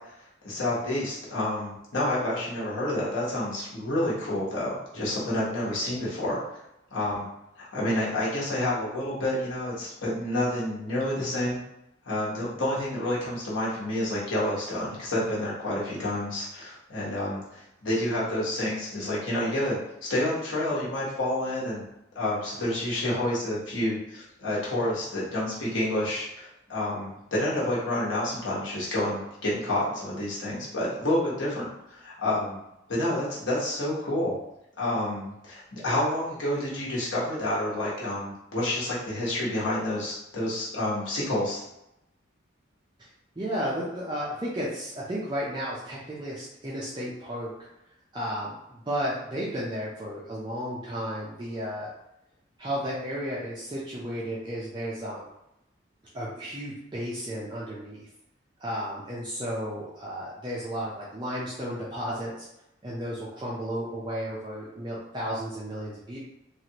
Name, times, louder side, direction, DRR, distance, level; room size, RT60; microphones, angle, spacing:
voice 1, 0.4-6.4 6.9-7.3 7.6-11.6 12.0-19.8 20.1-21.8 22.1-32.6 32.9-34.3 34.8-41.6, left 1 dB, 80° left, -6 dB, 1.1 m, -29 dB
voice 2, 43.4-47.5 48.1-51.9 52.6-55.3 56.1-58.1 58.6-62.5 62.8-66.2, equal, 25° right, -7 dB, 0.5 m, -33 dB
3.2 x 2.5 x 2.8 m, 0.85 s
head